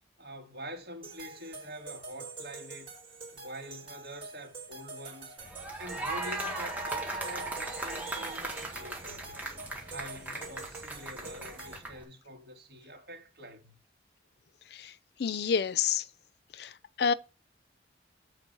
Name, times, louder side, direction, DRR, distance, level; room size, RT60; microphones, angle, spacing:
voice 1, 0.2-2.9 3.3-5.4 5.8-9.4 9.8-13.7, equal, 60° right, 2.0 m, -45 dB
sound 1, 1.0-11.7, right 3 dB, 30° right, 3.7 m, -46 dB
sound 2, 5.4-12.0, right 2 dB, 10° right, 1.8 m, -38 dB
voice 2, 15.2-16.0 16.6-16.7 17.0-17.1, left 6 dB, 60° left, 0.5 m, -28 dB
7.4 x 4.5 x 5.3 m
head